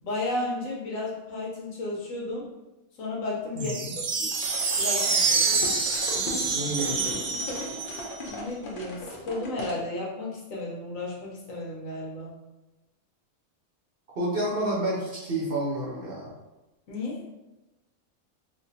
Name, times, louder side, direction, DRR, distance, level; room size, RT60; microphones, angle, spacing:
voice 1, 0.0-2.5 3.0-4.3 4.8-5.7 8.3-12.3 16.9-17.2, left 2 dB, 70° left, -4 dB, 1.2 m, -33 dB
voice 2, 3.5-3.9 6.5-7.4 14.2-16.3, right 1 dB, 50° right, -5 dB, 0.8 m, -30 dB
sound 1, 3.6-8.3, right 4 dB, 80° right, 0.5 m, -27 dB
sound 2, 4.3-9.8, left 1 dB, 50° left, 0.7 m, -38 dB
4.0 x 2.5 x 2.7 m, 1.0 s
omnidirectional pair, 1.5 m